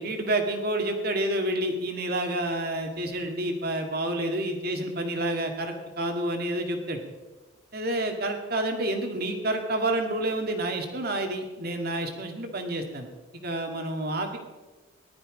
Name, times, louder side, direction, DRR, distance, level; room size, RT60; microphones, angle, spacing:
voice 1, 0.0-7.0 7.7-13.1 13.4-14.4, right 1 dB, 50° right, 4 dB, 2.2 m, -29 dB
19.5 x 12.0 x 5.1 m, 1.2 s
head